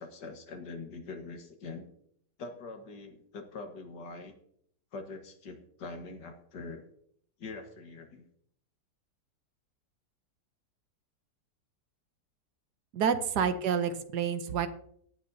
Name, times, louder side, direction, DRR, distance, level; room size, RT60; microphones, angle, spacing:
voice 1, 0.0-1.8 2.4-4.3 4.9-6.9 7.4-8.2, left 3 dB, 75° left, 5 dB, 2.1 m, -43 dB
voice 2, 12.9-14.7, right 7 dB, 70° right, 10 dB, 1.4 m, -28 dB
17.5 x 9.3 x 2.7 m, 0.67 s
omnidirectional pair, 1.9 m